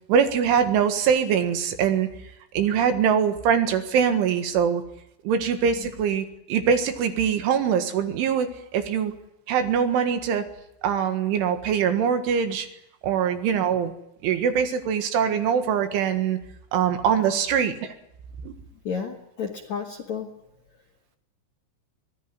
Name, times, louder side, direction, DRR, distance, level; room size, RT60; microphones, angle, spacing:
voice 1, 0.1-2.1 2.5-4.8 5.3-9.2 9.5-10.5 10.8-12.7 13.0-13.9 14.2-16.4 16.7-17.9 18.4-18.6, right 7 dB, 75° right, 7 dB, 4.0 m, -23 dB
voice 2, 18.8-20.3, left 6 dB, 55° left, 1 dB, 2.1 m, -32 dB
24.5 x 18.0 x 9.6 m, 0.83 s
omnidirectional pair, 5.7 m